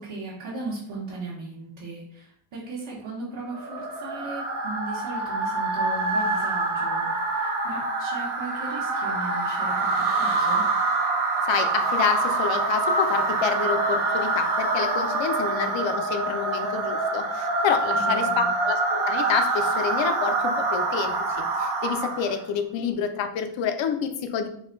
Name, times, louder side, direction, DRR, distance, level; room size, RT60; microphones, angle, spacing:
voice 1, 0.0-10.6 17.9-18.5, right 3 dB, 65° right, -7 dB, 1.1 m, -37 dB
sound 1, 3.5-22.4, right 3 dB, 80° right, 1.0 m, -25 dB
voice 2, 11.5-24.5, left 7 dB, 65° left, 8 dB, 0.6 m, -28 dB
3.9 x 2.2 x 3.9 m, 0.66 s
wide cardioid pair, 165°, 48 cm